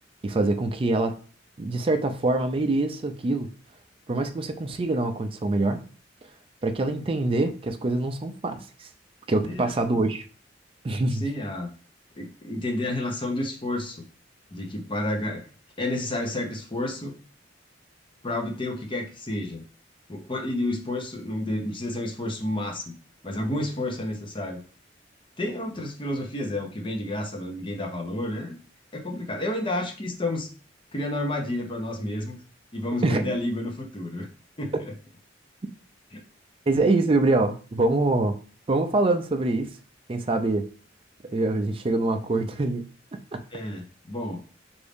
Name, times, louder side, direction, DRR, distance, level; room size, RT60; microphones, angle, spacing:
voice 1, 0.2-1.2 1.6-3.5 4.1-5.8 6.6-8.9 9.3-10.2 10.8-11.3 33.0-33.3 36.7-38.4 38.7-39.8 40.1-40.7 41.3-43.4, right 2 dB, 30° right, 6 dB, 0.4 m, -25 dB
voice 2, 11.1-11.7 12.2-14.0 14.5-15.4 15.8-17.2 18.2-19.6 20.1-22.9 23.2-24.6 25.4-28.6 28.9-30.5 30.9-32.4 32.7-34.3 34.6-34.7 36.1-36.2 43.5-44.4, left 1 dB, 30° left, 2 dB, 0.9 m, -30 dB
4.6 x 2.6 x 3.5 m, 0.38 s
head